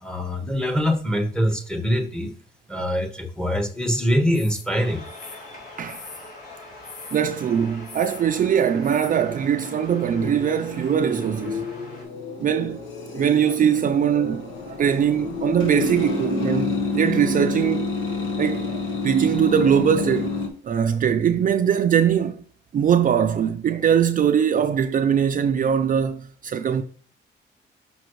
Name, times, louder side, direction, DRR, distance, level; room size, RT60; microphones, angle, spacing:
voice 1, 0.0-2.3 2.7-5.0, equal, 5° left, 1.1 m, -23 dB
sound 1, 4.3-4.7 5.1-6.3 6.8-7.3 7.8-8.2 8.8-9.2 9.6-9.7, left 4 dB, 40° left, 1.0 m, -42 dB
sound 2, 4.8-12.0, left 2 dB, 55° left, 3.4 m, -43 dB
voice 2, 7.1-11.7 12.4-12.9 13.1-17.9 18.4-20.4 20.6-22.4 22.7-26.8, right 8 dB, 45° right, 0.4 m, -21 dB
sound 3, 8.8-20.5, left 4 dB, 75° left, 1.3 m, -29 dB
6.1 x 5.6 x 3.0 m
cardioid pair, 90°, 20 cm